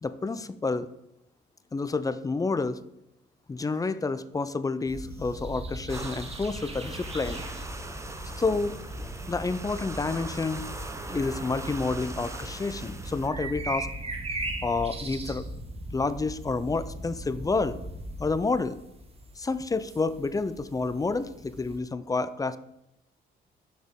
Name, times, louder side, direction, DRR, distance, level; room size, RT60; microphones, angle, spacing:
voice 1, 0.0-0.9 1.7-2.8 3.5-7.4 8.4-8.8 9.3-10.7 11.1-13.9 14.6-15.4 15.9-17.8 18.2-18.8 19.4-22.6, left 3 dB, 20° left, 13 dB, 0.4 m, -29 dB
sound 1, 4.9-21.8, right 1 dB, 30° right, 1.1 m, -39 dB
sound 2, 5.9-13.3, right 2 dB, 15° right, 0.7 m, -41 dB
6.5 x 5.8 x 3.6 m, 0.84 s
cardioid pair, 90°, 20 cm